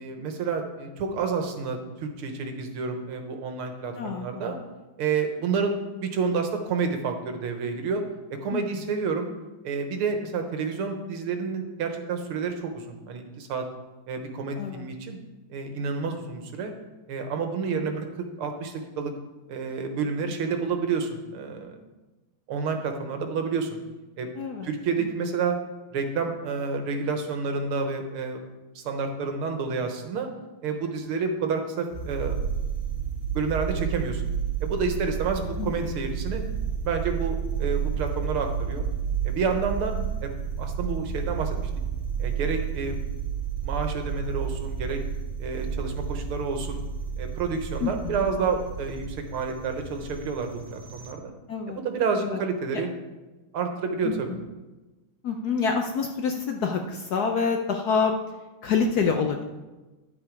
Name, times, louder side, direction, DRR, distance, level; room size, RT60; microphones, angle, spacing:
voice 1, 0.0-4.6 5.0-8.0 8.4-9.3 9.6-13.7 14.1-15.2 15.5-16.7 17.1-19.1 19.5-21.8 22.5-23.8 24.2-24.3 24.6-25.6 25.9-28.4 28.8-30.3 30.6-32.4 33.3-34.2 34.6-36.4 36.8-38.9 39.2-40.0 40.2-40.3 40.6-41.7 42.2-43.0 43.6-45.0 45.4-46.8 47.2-51.3 51.7-52.9 53.5-54.4, right 5 dB, 90° right, 5 dB, 2.1 m, -29 dB
voice 2, 4.0-4.6 8.5-8.6 14.6-14.9 24.4-24.7 35.6-36.0 47.8-48.3 51.5-51.8 52.2-52.4 54.0-54.4 55.2-58.2 58.6-59.4, left 5 dB, 65° left, 4 dB, 1.0 m, -27 dB
sound 1, 31.9-51.1, right 7 dB, 50° right, 1.0 m, -31 dB
10.5 x 7.9 x 4.7 m, 1.1 s
omnidirectional pair, 2.3 m